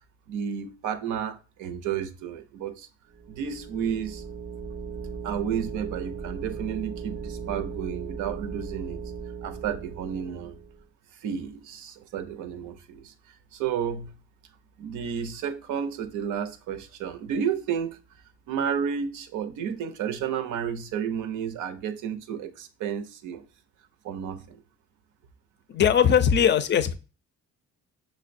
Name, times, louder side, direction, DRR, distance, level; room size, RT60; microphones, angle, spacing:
voice 1, 0.3-2.9 3.3-4.2 5.2-9.0 9.4-10.6 11.2-13.1 13.5-14.2 14.8-18.0 18.5-23.4 24.0-24.6, right 8 dB, 80° right, 0.6 m, -31 dB
sound 1, 3.1-10.8, right 5 dB, 35° right, 0.4 m, -38 dB
voice 2, 25.7-26.9, left 8 dB, 35° left, 0.4 m, -20 dB
6.1 x 2.1 x 2.5 m
cardioid pair, 90°, 30 cm